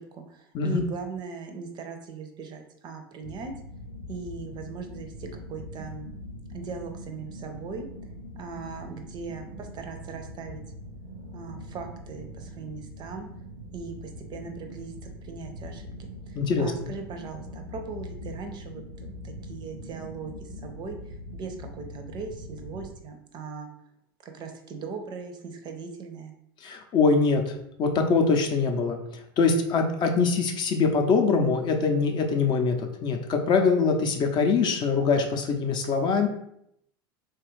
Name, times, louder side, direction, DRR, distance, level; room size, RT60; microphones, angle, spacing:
voice 1, 0.0-3.5 4.1-6.1 6.5-7.9 8.3-10.6 11.3-13.3 13.7-15.9 16.3-18.8 19.2-23.7 24.2-26.3, right 5 dB, 35° right, 6 dB, 0.5 m, -39 dB
sound 1, 3.2-22.9, left 1 dB, 90° right, 0.5 m, -42 dB
voice 2, 16.4-16.7 26.6-29.0 29.4-36.3, left 4 dB, 35° left, 4 dB, 0.5 m, -23 dB
3.1 x 2.3 x 3.1 m, 0.74 s
hypercardioid pair, 95°, 12 cm